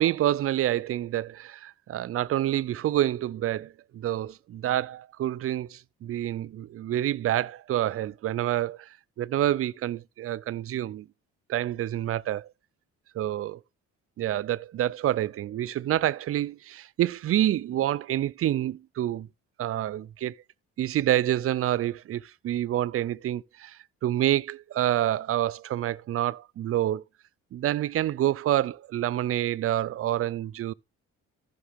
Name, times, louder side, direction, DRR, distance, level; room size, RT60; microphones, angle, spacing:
voice 1, 0.0-8.9 9.2-11.1 11.5-12.5 13.2-13.6 14.2-19.3 19.6-20.3 20.8-27.0 27.5-30.7, right 12 dB, 50° right, 0.4 m, -27 dB
14.5 x 5.8 x 3.5 m
cardioid pair, 90°, 30 cm